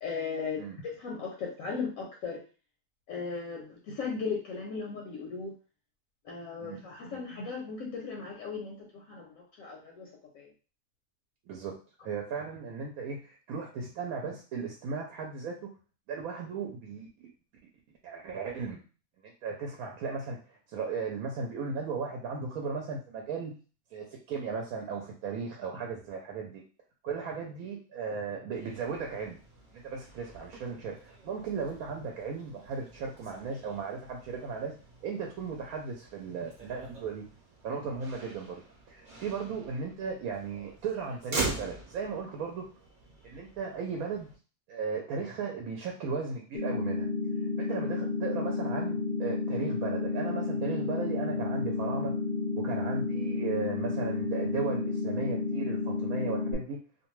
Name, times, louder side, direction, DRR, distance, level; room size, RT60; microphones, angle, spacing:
voice 1, 0.0-2.4 3.1-5.5 6.2-10.1 10.3-10.5, left 5 dB, 70° left, 0 dB, 0.9 m, -37 dB
voice 2, 11.5-11.8 12.0-15.7 16.1-17.3 18.0-18.8 19.2-20.4 20.7-23.5 23.9-26.6 27.0-29.4 29.7-34.8 35.0-37.2 37.6-38.6 38.9-42.7 43.2-44.3 44.7-47.1 47.6-52.2 52.6-56.8, right 5 dB, 75° right, 1 dB, 1.0 m, -36 dB
Motor vehicle (road), 28.5-44.4, right 3 dB, 40° right, 0.8 m, -43 dB
sound 1, 46.5-56.5, left 3 dB, 55° left, 0.5 m, -31 dB
2.5 x 2.2 x 3.0 m, 0.35 s
omnidirectional pair, 1.6 m